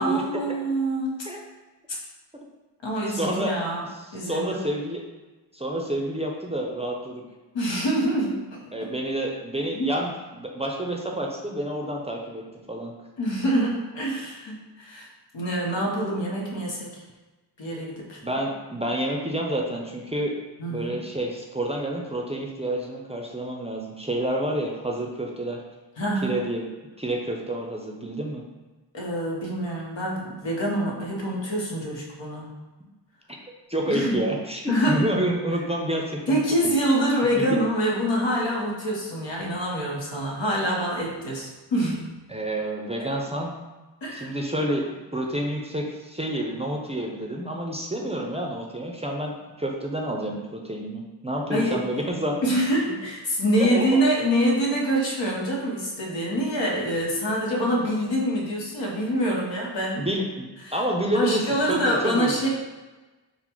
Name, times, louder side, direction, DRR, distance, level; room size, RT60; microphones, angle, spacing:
voice 1, 0.0-1.2 1.9-2.0 2.8-3.8 4.1-4.6 7.5-8.9 9.7-9.9 13.2-15.1 15.3-17.0 17.6-18.2 20.6-21.0 26.0-26.3 28.9-32.5 33.9-34.2 34.7-35.1 36.3-42.1 44.0-44.3 51.5-51.8 52.4-60.0 60.6-60.8 61.1-62.5, equal, 85° left, -3 dB, 1.0 m, -25 dB
voice 2, 3.1-3.6 4.3-5.0 5.5-7.2 8.7-12.9 18.2-20.4 20.7-25.6 26.2-26.6 27.0-28.4 33.7-36.7 37.2-37.6 42.3-43.5 44.1-52.6 53.6-54.0 60.0-62.5, right 1 dB, 15° right, 0 dB, 0.4 m, -29 dB
3.9 x 2.0 x 4.4 m, 1.2 s
wide cardioid pair, 90°, 43 cm